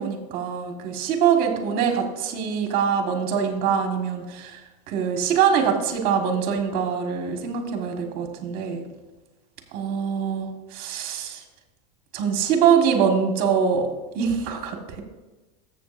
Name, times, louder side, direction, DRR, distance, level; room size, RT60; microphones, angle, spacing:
voice 1, 0.0-4.6 4.9-8.8 9.7-11.4 12.1-13.9 14.1-15.0, right 7 dB, 45° right, 4 dB, 1.6 m, -23 dB
13.5 x 7.6 x 2.6 m, 1.2 s
supercardioid pair, 150°, 21 cm